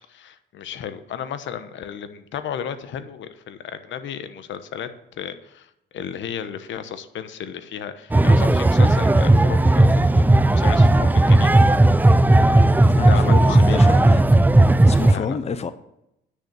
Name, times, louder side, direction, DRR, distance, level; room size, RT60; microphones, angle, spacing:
voice 1, 0.1-10.3 10.5-11.5 13.1-13.8 15.1-15.4, left 8 dB, 70° left, 11 dB, 1.0 m, -34 dB
sound 1, 8.1-15.1, right 1 dB, 10° right, 0.4 m, -15 dB
voice 2, 12.9-14.2 14.9-15.7, left 5 dB, 30° left, 12 dB, 0.8 m, -28 dB
9.8 x 6.6 x 7.0 m, 0.80 s
cardioid pair, 90°, 20 cm